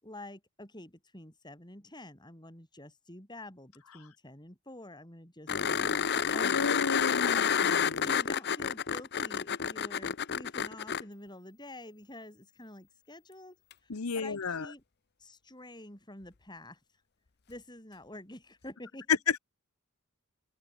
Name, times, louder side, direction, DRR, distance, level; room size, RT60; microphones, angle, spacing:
voice 1, 0.0-7.5 8.0-13.6 13.8-14.8 15.2-16.8 17.5-19.1, left 1 dB, 20° left, 6.6 m, -48 dB
sound 1, 5.5-11.0 13.7-13.8, left 7 dB, 50° left, 0.8 m, -29 dB
voice 2, 6.3-8.0 13.9-14.7 19.3-19.4, left 5 dB, 85° left, 0.9 m, -33 dB
open air
head